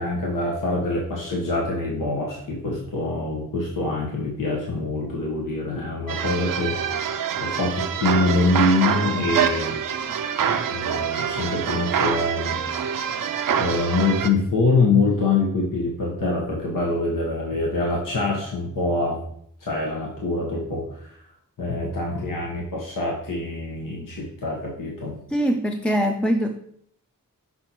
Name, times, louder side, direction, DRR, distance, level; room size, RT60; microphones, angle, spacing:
voice 1, 0.0-9.8 10.7-13.0 13.6-19.2 19.6-21.1 21.6-25.2, left 3 dB, 70° left, -3 dB, 1.3 m, -25 dB
sound 1, 6.1-14.3, right 8 dB, 75° right, 0.6 m, -25 dB
voice 2, 25.3-26.7, equal, 5° left, 3 dB, 0.5 m, -23 dB
6.1 x 5.8 x 3.0 m, 0.67 s
cardioid pair, 60°, 33 cm